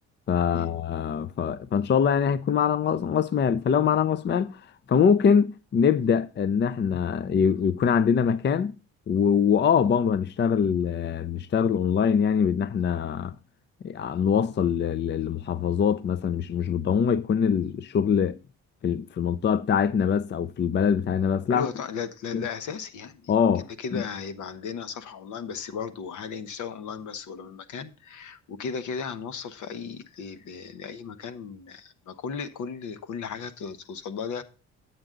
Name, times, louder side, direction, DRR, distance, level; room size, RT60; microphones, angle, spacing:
voice 1, 0.3-4.6 4.9-8.7 9.1-13.4 13.8-18.4 18.8-21.7 22.3-22.4 23.3-23.6 23.9-24.0, left 7 dB, 35° left, 0.5 m, -23 dB
voice 2, 21.5-23.3 23.8-34.4, left 6 dB, 75° left, 1.1 m, -35 dB
10.5 x 7.9 x 3.7 m
cardioid pair, 90°, 30 cm